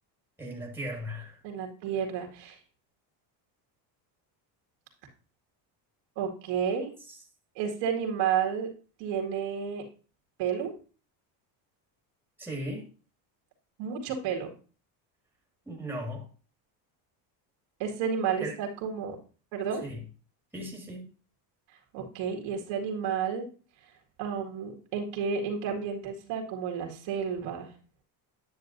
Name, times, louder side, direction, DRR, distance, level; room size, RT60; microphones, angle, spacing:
voice 1, 0.4-1.4 7.1-7.2 12.4-12.9 15.7-16.3 18.4-18.6 19.8-20.0 20.5-21.1, equal, 5° right, 1.9 m, -37 dB
voice 2, 1.4-2.6 6.2-6.9 7.6-8.7 9.0-9.8 10.4-10.7 13.8-14.5 17.8-19.2 19.5-19.8 21.9-23.5 24.2-27.7, right 7 dB, 70° right, 2.1 m, -31 dB
10.0 x 6.7 x 2.6 m
supercardioid pair, 115°, 49 cm